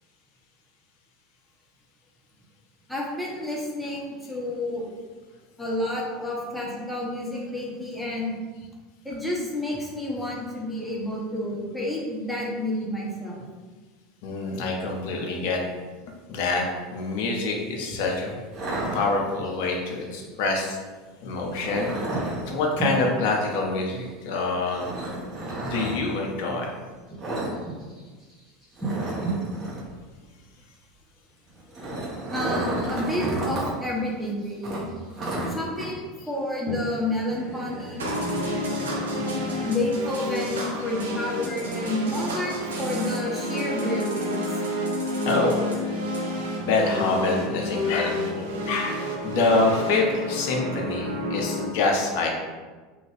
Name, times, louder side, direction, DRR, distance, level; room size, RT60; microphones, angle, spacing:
voice 1, 2.9-4.8 5.6-8.3 9.0-13.4 27.1-27.2 27.6-27.7 28.8-28.9 29.2-29.3 32.3-34.9 35.5-38.0 39.7-44.6, left 1 dB, ahead, -4 dB, 0.7 m, -30 dB
voice 2, 14.2-15.6 16.3-16.7 16.9-18.3 18.9-20.8 21.2-21.9 22.5-25.0 25.6-26.8 36.2-36.3 45.3-46.0 46.3-52.3, left 3 dB, 55° left, 0 dB, 0.5 m, -26 dB
sound 1, 18.5-19.6 21.6-22.5 24.7-25.9 27.2-27.6 27.8-28.0 28.3-28.4 28.8-29.9 31.5-33.7 34.0-34.1 34.6-35.8, right 1 dB, 30° right, 1.0 m, -31 dB
sound 2, 36.7-47.2 47.8-47.9, equal, 55° right, 1.0 m, -44 dB
sound 3, 38.0-51.7, equal, 70° right, 0.5 m, -30 dB
2.5 x 2.2 x 3.3 m, 1.4 s
figure-of-eight pair, 75°, 0 cm